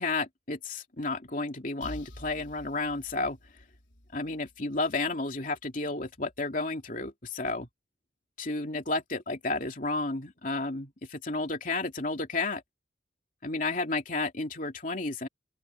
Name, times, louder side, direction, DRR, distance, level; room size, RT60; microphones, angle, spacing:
voice 1, 0.0-3.4 4.1-7.7 8.4-12.6 13.4-15.3, left 3 dB, 45° left, 2.8 m, -32 dB
sound 1, 1.8-5.5, left 1 dB, 80° left, 3.9 m, -49 dB
open air
head